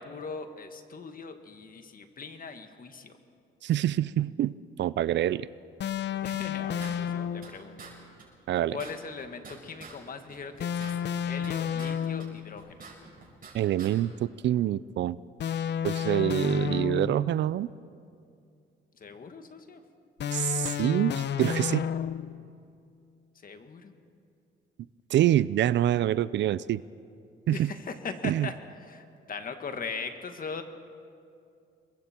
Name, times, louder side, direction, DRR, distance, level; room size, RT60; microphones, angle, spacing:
voice 1, 0.0-3.1 6.2-7.8 8.7-12.8 19.0-19.8 23.4-24.0 27.5-28.5 28.9-30.6, left 5 dB, 45° left, 7 dB, 1.8 m, -40 dB
voice 2, 3.6-5.5 8.5-8.8 13.5-15.2 15.8-17.7 20.3-21.9 25.1-26.8 27.5-27.8 28.2-28.5, right 12 dB, 65° right, 19 dB, 0.5 m, -26 dB
sound 1, 5.8-7.6 10.6-12.5 15.4-17.3 20.2-22.4, left 8 dB, 60° left, 0.8 m, -31 dB
sound 2, 6.3-7.5 7.8-7.9 8.2-8.3 8.5-10.0 10.3-11.9 12.2-13.5 13.8-13.9, right 5 dB, 45° right, 6.1 m, -47 dB
28.0 x 22.5 x 4.5 m, 2.4 s
cardioid pair, 90°, 20 cm